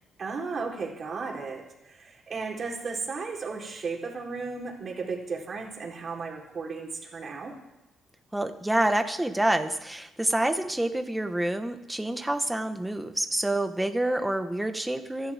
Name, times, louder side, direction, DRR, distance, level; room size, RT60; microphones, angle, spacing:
voice 1, 0.2-7.6, right 4 dB, 45° right, -1 dB, 4.0 m, -35 dB
voice 2, 8.3-15.3, right 1 dB, 10° right, 7 dB, 1.5 m, -27 dB
26.0 x 11.5 x 3.7 m, 0.90 s
cardioid pair, 90°, 0 cm